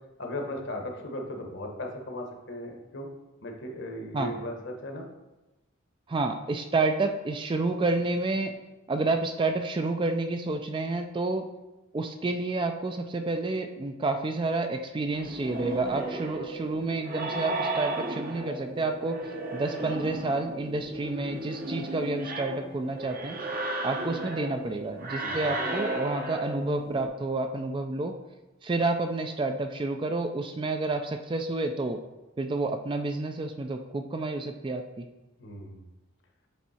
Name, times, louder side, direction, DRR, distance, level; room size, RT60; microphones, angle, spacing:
voice 1, 0.2-3.1 3.4-5.1 25.2-25.5 35.4-35.8, left 1 dB, 60° left, 2 dB, 1.1 m, -37 dB
voice 2, 6.1-8.5 8.9-11.4 11.9-19.2 19.5-23.4 23.8-28.1 28.6-32.0 32.4-35.1, right 3 dB, 25° right, 6 dB, 0.3 m, -29 dB
sound 1, 15.1-27.1, right 2 dB, 45° right, 0.7 m, -34 dB
7.2 x 3.6 x 4.2 m, 1.0 s
head